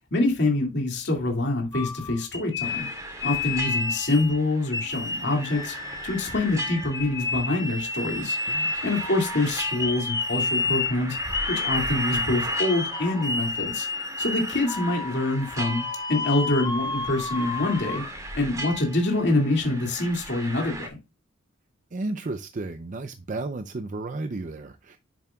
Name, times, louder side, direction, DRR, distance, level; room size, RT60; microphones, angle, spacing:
voice 1, 0.1-2.9 3.2-5.8 6.0-8.4 8.8-11.2 11.5-13.9 14.2-18.0 18.3-21.0, left 2 dB, 55° left, 2.3 m, -25 dB
sound 1, 1.7-4.4 4.7-18.1, left 4 dB, 20° left, 0.7 m, -31 dB
sound 2, 2.6-20.9, right 1 dB, 15° right, 2.2 m, -37 dB
voice 2, 8.5-8.8 21.9-25.0, right 2 dB, 35° right, 0.5 m, -33 dB
10.0 x 7.3 x 2.3 m
head